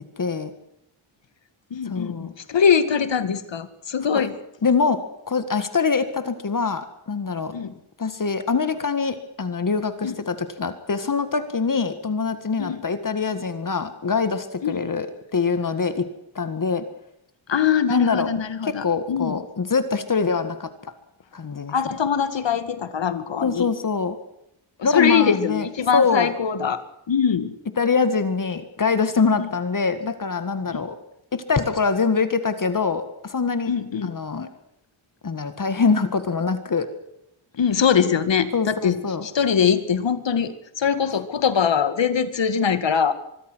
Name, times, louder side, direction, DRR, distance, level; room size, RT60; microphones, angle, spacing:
voice 1, 0.2-0.5 1.9-2.3 4.1-4.2 4.6-5.0 5.3-7.5 8.0-15.1 15.3-16.1 16.4-16.8 17.9-18.3 18.6-20.7 21.3-21.7 23.4-24.2 24.8-25.7 25.9-26.3 27.8-31.0 31.3-33.7 34.0-34.5 35.2-36.9 38.5-39.3, left 5 dB, 40° left, 10 dB, 1.8 m, -24 dB
voice 2, 1.7-4.3 7.5-7.7 10.0-10.2 12.6-12.8 14.6-14.8 17.5-19.4 21.7-23.7 24.8-26.8 27.1-27.5 29.4-29.5 30.7-30.8 33.7-34.1 37.6-43.1, left 7 dB, 60° left, 12 dB, 2.1 m, -22 dB
25.0 x 22.5 x 6.3 m, 0.79 s
wide cardioid pair, 165°, 49 cm